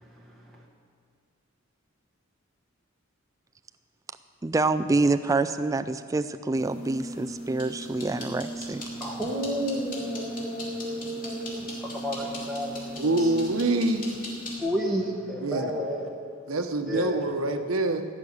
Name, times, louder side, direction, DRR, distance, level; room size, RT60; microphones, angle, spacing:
voice 1, 4.4-8.8, right 3 dB, 15° right, 10 dB, 0.3 m, -26 dB
sound 1, 6.5-14.6, equal, 40° left, 3.0 m, -37 dB
voice 2, 9.0-13.3 14.6-16.1 16.9-17.2, equal, ahead, -3 dB, 1.1 m, -31 dB
voice 3, 12.9-14.1 15.4-15.7 16.5-18.1, right 2 dB, 85° right, 7 dB, 1.0 m, -26 dB
16.0 x 6.2 x 9.5 m, 2.2 s
head